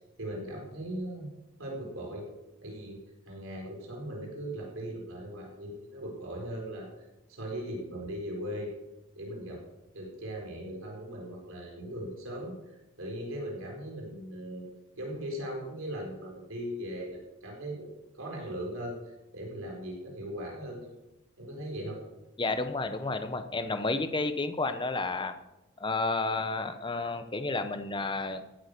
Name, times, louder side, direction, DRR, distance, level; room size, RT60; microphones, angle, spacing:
voice 1, 0.2-1.3 1.6-2.3 2.6-3.0 3.3-6.9 7.3-8.7 9.1-9.6 9.9-14.7 15.0-17.9 18.1-20.9 21.4-22.0, equal, 65° right, -1 dB, 4.5 m, -39 dB
voice 2, 22.4-25.3 25.8-28.4, left 3 dB, 20° left, 9 dB, 0.9 m, -31 dB
16.0 x 8.8 x 6.7 m, 0.98 s
head